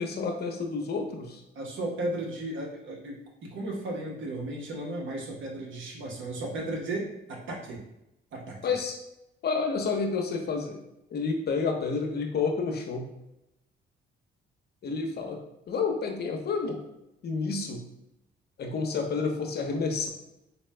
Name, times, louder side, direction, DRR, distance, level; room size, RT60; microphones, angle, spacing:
voice 1, 0.0-1.4 8.6-9.0 9.4-10.8 11.1-13.1 14.8-15.4 15.7-16.8 17.2-17.8 18.6-20.1, left 4 dB, 55° left, 4 dB, 0.7 m, -29 dB
voice 2, 1.5-7.8 8.3-8.8, right 1 dB, 75° right, -1 dB, 1.0 m, -35 dB
4.2 x 2.2 x 3.2 m, 0.86 s
cardioid pair, 90°, 20 cm